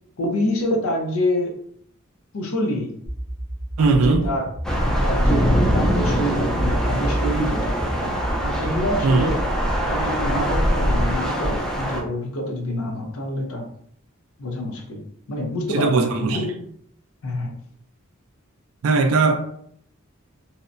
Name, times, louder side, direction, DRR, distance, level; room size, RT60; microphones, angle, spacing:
voice 1, 0.2-1.6 2.3-3.0 3.8-4.5 4.8-7.8 8.4-9.4 9.9-13.7 14.4-16.7 17.2-17.5, left 1 dB, 70° left, 3 dB, 0.6 m, -27 dB
sound 1, 3.1-6.1 6.5-9.5, right 1 dB, 40° left, 0.9 m, -30 dB
voice 2, 3.8-4.3 9.0-9.3 15.7-16.4 18.8-19.4, right 4 dB, 70° right, 5 dB, 0.3 m, -19 dB
Thunder / Rain, 4.6-12.0, equal, 5° left, 0.4 m, -22 dB
2.8 x 2.1 x 2.5 m, 0.67 s
head